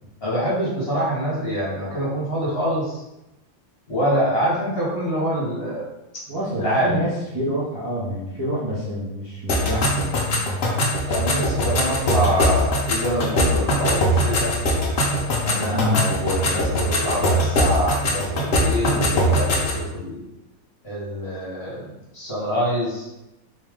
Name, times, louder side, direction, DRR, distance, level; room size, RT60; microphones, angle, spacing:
voice 1, 0.2-3.0 3.9-5.9 6.6-7.0 11.1-14.6 15.4-20.2 20.8-23.1, equal, 40° left, -7 dB, 1.1 m, -25 dB
voice 2, 6.3-10.2 15.7-16.0, equal, 30° right, -9 dB, 0.4 m, -27 dB
sound 1, 9.5-19.8, equal, 60° left, 0.6 m, -22 dB
3.2 x 3.1 x 3.5 m, 0.93 s
omnidirectional pair, 2.0 m